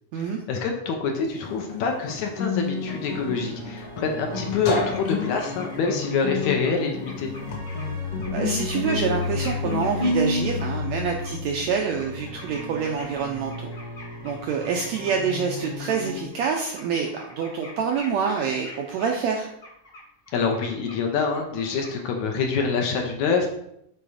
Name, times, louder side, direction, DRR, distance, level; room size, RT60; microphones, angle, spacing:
voice 1, 0.2-7.4 20.3-23.5, left 5 dB, 75° left, 2 dB, 2.0 m, -26 dB
Guitar, 1.2-10.6, left 3 dB, 55° left, 1.9 m, -30 dB
sound 1, 2.5-16.3, left 4 dB, 40° right, 0.9 m, -35 dB
sound 2, 4.3-6.0 6.2-10.3 10.6-11.3 11.7-21.0 21.3-22.0, left 1 dB, 35° left, 0.9 m, -45 dB
voice 2, 8.3-13.7 14.2-19.5, right 6 dB, 85° right, 1 dB, 1.6 m, -26 dB
6.9 x 4.1 x 4.9 m, 0.76 s
omnidirectional pair, 3.8 m